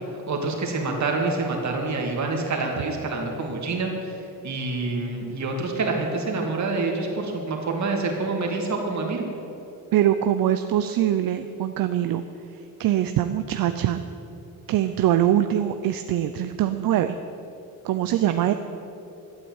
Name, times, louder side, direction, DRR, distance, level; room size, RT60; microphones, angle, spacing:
voice 1, 0.3-4.1 4.4-9.2, right 3 dB, 50° right, 1 dB, 2.6 m, -27 dB
voice 2, 9.9-12.2 12.8-14.0 14.7-17.2 17.8-18.5, right 11 dB, 75° right, 9 dB, 0.6 m, -23 dB
12.5 x 8.6 x 8.8 m, 2.9 s
cardioid pair, 130°, 35 cm